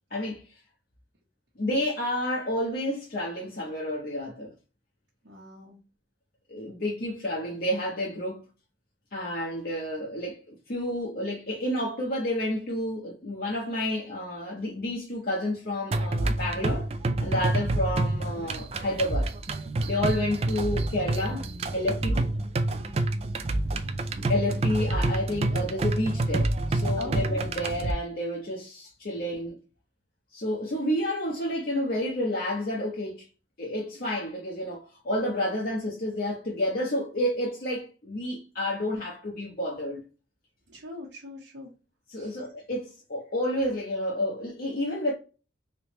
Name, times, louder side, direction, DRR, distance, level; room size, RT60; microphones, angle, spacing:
voice 1, 0.1-0.4 1.6-4.5 6.5-8.4 9.1-16.9 17.2-19.3 19.9-21.4 21.7-22.2 24.3-29.6 30.3-33.3 33.6-40.0 42.1-45.1, left 1 dB, 50° left, 0.7 m, -30 dB
voice 2, 5.2-5.8 21.9-22.3 27.0-27.2 40.7-41.7 42.1-42.3, left 1 dB, 75° right, 0.9 m, -42 dB
sound 1, 15.9-27.9, right 2 dB, 35° right, 0.3 m, -28 dB
3.3 x 3.0 x 2.9 m
head